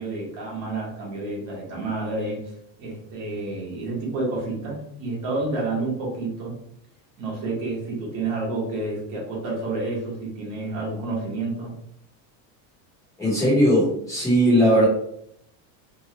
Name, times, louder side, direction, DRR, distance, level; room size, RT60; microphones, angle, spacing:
voice 1, 0.0-2.5 2.8-6.5 7.2-11.7, right 2 dB, 40° right, -4 dB, 1.3 m, -29 dB
voice 2, 13.2-14.8, equal, 5° left, -8 dB, 1.0 m, -18 dB
2.9 x 2.3 x 2.9 m, 0.72 s
cardioid pair, 165°, 49 cm